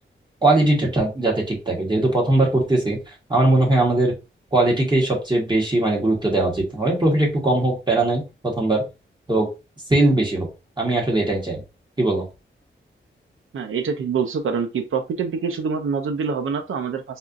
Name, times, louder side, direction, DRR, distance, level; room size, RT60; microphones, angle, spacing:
voice 1, 0.4-4.1 4.5-8.8 9.3-9.5 9.9-10.5 10.8-11.6 12.0-12.3, right 2 dB, 20° right, -2 dB, 1.2 m, -20 dB
voice 2, 13.5-17.0, right 5 dB, 75° right, 5 dB, 0.5 m, -25 dB
4.2 x 2.4 x 2.5 m, 0.28 s
wide cardioid pair, 85°, 21 cm